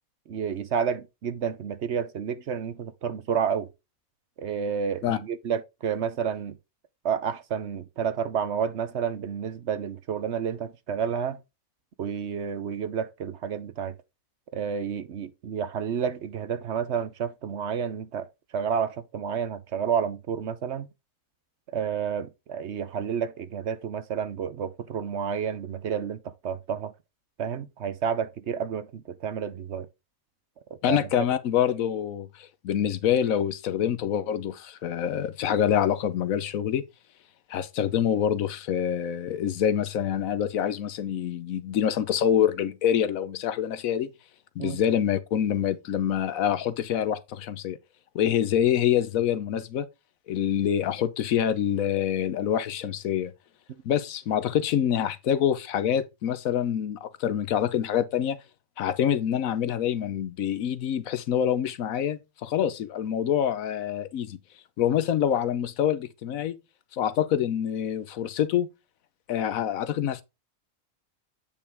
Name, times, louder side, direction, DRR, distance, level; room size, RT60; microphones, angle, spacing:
voice 1, 0.3-3.7 4.4-6.6 7.0-11.4 12.0-13.9 14.5-18.3 18.5-20.9 21.7-26.9 27.4-29.9 30.9-31.0 44.6-44.8, right 7 dB, 60° right, 0.9 m, -30 dB
voice 2, 30.8-36.8 37.5-44.1 44.6-47.8 48.1-49.9 50.3-53.3 53.8-58.4 58.8-64.4 64.8-66.5 66.9-68.7 69.3-70.2, left 9 dB, 75° left, 1.1 m, -26 dB
8.5 x 5.3 x 3.4 m
omnidirectional pair, 1.5 m